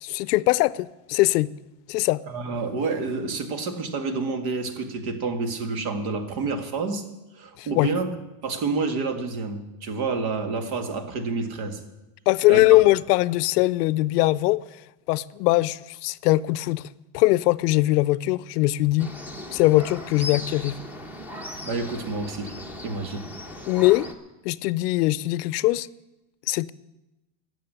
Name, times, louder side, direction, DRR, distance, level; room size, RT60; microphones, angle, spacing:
voice 1, 0.0-1.5 1.9-2.2 7.6-7.9 12.3-14.6 15.1-16.8 17.1-19.1 19.5-20.7 23.7-24.1 24.4-25.9 26.5-26.7, left 19 dB, 75° left, 0.6 m, -21 dB
voice 2, 2.3-7.0 7.3-8.1 8.4-11.8 12.5-12.6 21.6-22.6 22.8-23.3, right 4 dB, 60° right, 2.0 m, -29 dB
sound 1, 19.0-24.1, left 1 dB, 5° right, 0.9 m, -37 dB
12.5 x 7.5 x 9.8 m
supercardioid pair, 150°, 48 cm